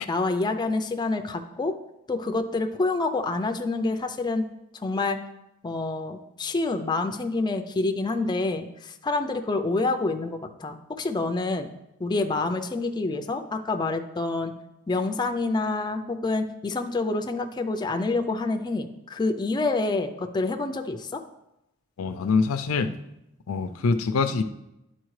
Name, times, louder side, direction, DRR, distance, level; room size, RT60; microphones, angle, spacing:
voice 1, 0.1-1.7 2.1-4.5 4.7-5.2 5.6-11.7 12.0-14.5 14.9-21.2, left 3 dB, 20° left, 6 dB, 0.4 m, -27 dB
voice 2, 22.0-22.9 23.5-24.4, left 4 dB, 85° left, 10 dB, 0.4 m, -24 dB
11.0 x 4.2 x 3.2 m, 0.87 s
head